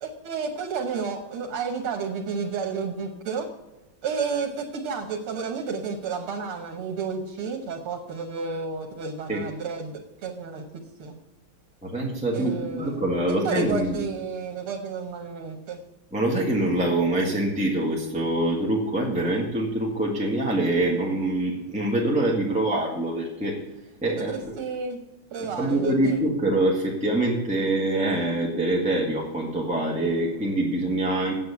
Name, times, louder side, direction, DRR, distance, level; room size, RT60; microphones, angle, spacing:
voice 1, 0.0-3.5 4.0-10.6 11.0-11.1 12.3-13.1 13.4-15.8 24.2-25.0 25.3-26.2, right 5 dB, 85° right, 2 dB, 2.0 m, -31 dB
voice 2, 11.8-14.1 16.1-23.6 24.0-24.5 25.6-31.3, right 1 dB, 5° right, -4 dB, 1.6 m, -25 dB
8.6 x 7.4 x 8.2 m, 1.0 s
omnidirectional pair, 2.3 m